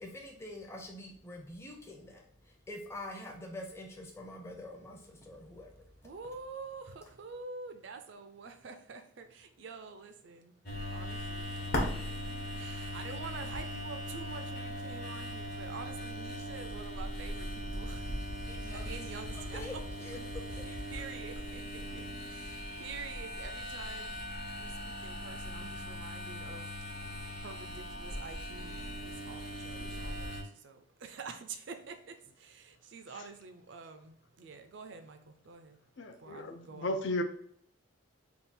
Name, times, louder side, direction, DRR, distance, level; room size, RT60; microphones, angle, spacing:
voice 1, 0.0-5.8 18.4-20.8, left 1 dB, 15° left, 0 dB, 0.6 m, -46 dB
voice 2, 6.0-10.5 10.9-19.8 20.5-20.6 20.9-36.9, right 4 dB, 60° right, 7 dB, 0.4 m, -48 dB
sound 1, 10.7-30.4, left 1 dB, 45° left, 0.9 m, -39 dB
voice 3, 36.0-37.2, left 1 dB, 60° left, 6 dB, 0.5 m, -34 dB
3.6 x 2.3 x 4.2 m, 0.65 s
head